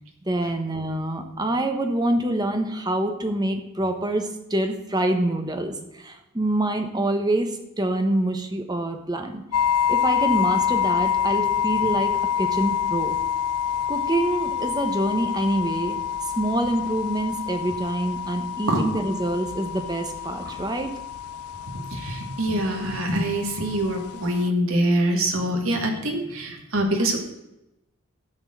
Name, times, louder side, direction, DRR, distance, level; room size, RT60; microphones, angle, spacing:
voice 1, 0.3-9.4 9.9-13.2 13.9-21.0, right 1 dB, 20° right, 5 dB, 1.1 m, -26 dB
sound 1, 9.5-24.5, left 9 dB, 85° left, 0.4 m, -27 dB
voice 2, 21.9-27.2, right 1 dB, 70° right, 2 dB, 1.8 m, -24 dB
13.5 x 4.5 x 7.6 m, 0.91 s
head